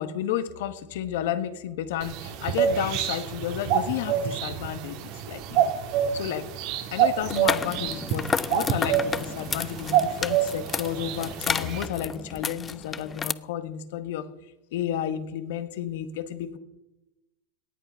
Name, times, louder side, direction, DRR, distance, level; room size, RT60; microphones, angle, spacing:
voice 1, 0.0-5.7 6.1-6.5 6.9-14.3 14.7-16.6, left 10 dB, 75° left, 11 dB, 1.5 m, -32 dB
sound 1, 2.0-11.9, right 9 dB, 55° right, 1.6 m, -27 dB
sound 2, 7.2-13.3, left 6 dB, 20° left, 0.4 m, -31 dB
18.0 x 9.4 x 5.7 m, 0.97 s
supercardioid pair, 135°, 0 cm